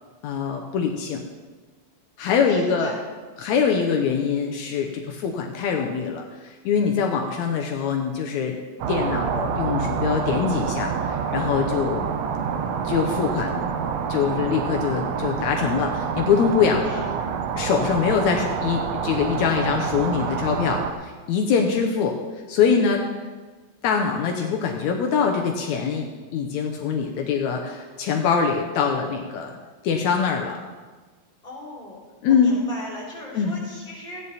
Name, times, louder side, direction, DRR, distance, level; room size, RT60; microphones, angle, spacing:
voice 1, 0.2-1.2 2.2-2.9 3.4-8.6 8.9-12.1 12.8-13.7 14.1-17.2 17.6-22.2 22.5-23.0 23.8-26.1 26.3-29.6 29.8-30.6 32.2-32.5 33.3-33.6, left 6 dB, 75° left, 2 dB, 2.2 m, -23 dB
voice 2, 2.4-2.9 16.9-17.4 31.4-32.0 32.3-34.2, left 1 dB, 15° left, -4 dB, 3.5 m, -38 dB
sound 1, 8.8-20.9, right 6 dB, 70° right, 1.7 m, -27 dB
14.5 x 9.6 x 4.1 m, 1.4 s
omnidirectional pair, 3.3 m